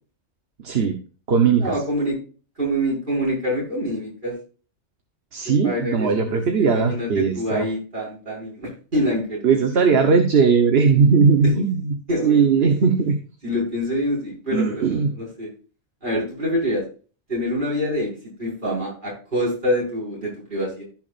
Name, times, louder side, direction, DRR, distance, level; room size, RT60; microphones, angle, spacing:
voice 1, 0.6-1.0 1.3-1.7 5.3-7.6 9.4-13.2 14.5-15.1, right 5 dB, 60° right, 6 dB, 1.3 m, -18 dB
voice 2, 1.6-2.2 2.6-4.3 5.4-9.6 10.0-10.1 11.4-11.5 12.1-12.7 13.4-15.5 16.0-16.8 17.3-18.1 18.4-20.8, equal, 45° right, -5 dB, 5.9 m, -26 dB
15.0 x 6.1 x 2.5 m, 0.37 s
omnidirectional pair, 1.2 m